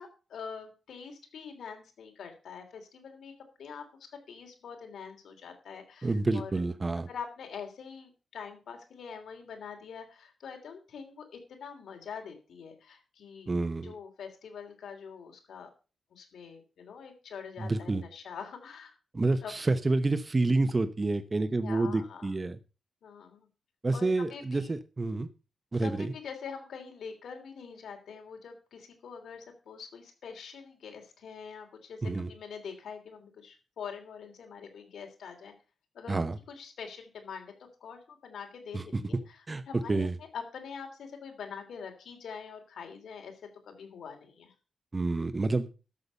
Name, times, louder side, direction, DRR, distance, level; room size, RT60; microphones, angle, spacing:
voice 1, 0.0-3.3 3.6-6.6 7.1-13.5 13.8-15.7 16.1-18.9 19.4-19.5 21.6-22.3 23.0-23.5 23.9-24.7 25.8-35.5 35.9-37.5 37.8-44.5, left 6 dB, 80° left, 4 dB, 3.2 m, -44 dB
voice 2, 6.0-7.1 13.5-13.9 17.6-18.0 19.1-22.6 23.8-25.3 25.7-26.1 32.0-32.3 36.1-36.4 38.7-39.0 39.5-40.1 44.9-45.7, right 3 dB, 25° right, 10 dB, 0.8 m, -28 dB
12.5 x 6.8 x 5.5 m, 0.33 s
cardioid pair, 110°, 0 cm